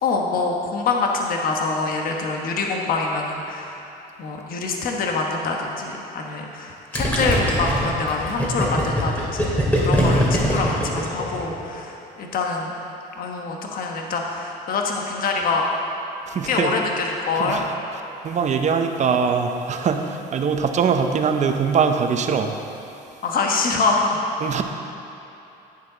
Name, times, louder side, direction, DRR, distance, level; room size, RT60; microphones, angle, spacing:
voice 1, 0.0-3.8 4.2-12.7 13.2-15.7 16.4-17.6 20.0-20.1 23.2-24.2, left 3 dB, 60° left, 1 dB, 1.2 m, -25 dB
Gurgling, 6.9-11.6, equal, 10° left, 2.3 m, -21 dB
voice 2, 16.3-16.8 17.4-17.7 18.2-22.6 24.4-24.6, right 6 dB, 45° right, 6 dB, 0.8 m, -22 dB
10.5 x 9.7 x 4.0 m, 3.0 s
cardioid pair, 110°, 17 cm